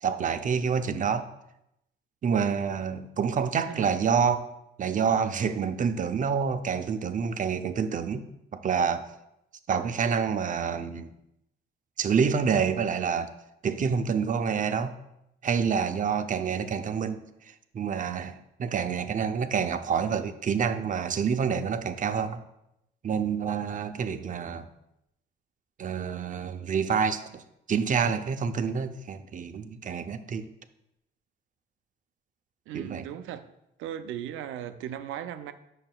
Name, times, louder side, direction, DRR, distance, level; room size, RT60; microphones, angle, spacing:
voice 1, 0.0-1.3 2.2-4.5 4.8-8.2 8.5-9.1 9.7-11.1 12.0-13.3 13.6-14.9 15.4-22.4 23.0-24.7 25.8-30.5 32.7-33.1, right 6 dB, 40° right, 9 dB, 0.5 m, -27 dB
voice 2, 3.7-4.1 32.7-33.5 33.8-35.5, right 10 dB, 90° right, 10 dB, 0.5 m, -37 dB
8.8 x 6.5 x 2.3 m, 0.83 s
cardioid pair, 90°, 20 cm